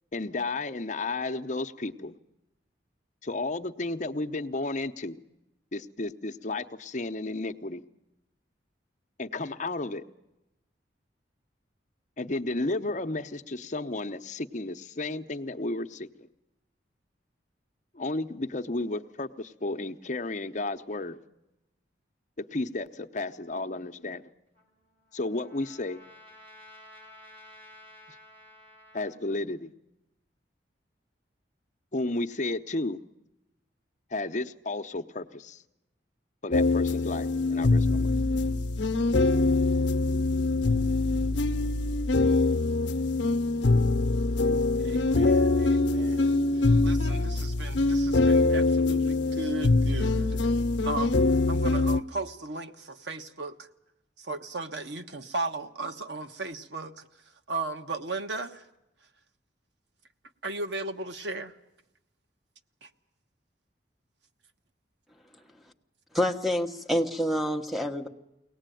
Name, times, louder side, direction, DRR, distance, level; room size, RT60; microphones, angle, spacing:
voice 1, 0.1-2.2 3.2-5.2 5.7-7.8 9.2-10.0 12.2-16.3 17.9-21.2 22.4-24.3 25.1-26.0 28.9-29.7 31.9-33.0 34.1-35.6 36.4-38.1, left 2 dB, 40° left, 0.8 m, -33 dB
Trumpet, 24.5-29.2, left 1 dB, 30° right, 6.3 m, -52 dB
sound 1, 36.5-52.0, left 3 dB, 75° left, 0.8 m, -24 dB
voice 2, 44.8-50.4 50.8-51.2 51.5-53.7 54.2-57.0 57.5-58.6 60.4-61.5 62.8-62.9, right 3 dB, 70° right, 1.2 m, -36 dB
voice 3, 66.1-68.1, equal, ahead, 1.2 m, -27 dB
23.0 x 18.5 x 9.2 m
head